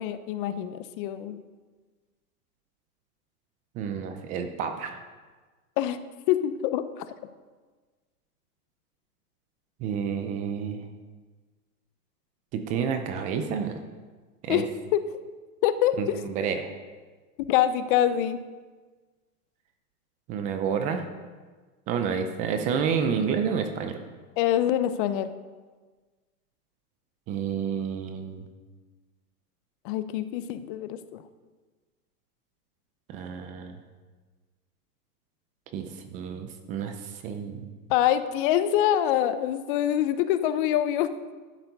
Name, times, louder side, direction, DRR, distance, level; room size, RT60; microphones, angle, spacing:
voice 1, 0.0-1.4 5.8-6.0 6.3-7.0 14.5-14.6 14.9-15.0 15.6-16.2 17.5-18.4 24.4-25.3 29.8-31.2 37.9-41.1, left 11 dB, 35° left, 12 dB, 0.7 m, -25 dB
voice 2, 3.7-5.0 9.8-10.8 12.5-13.8 14.4-14.6 16.0-16.7 20.3-21.1 21.9-24.0 27.3-28.5 33.1-33.8 35.7-37.7, right 7 dB, 15° right, 7 dB, 0.4 m, -30 dB
12.0 x 7.0 x 5.3 m, 1.4 s
hypercardioid pair, 140°, 45 cm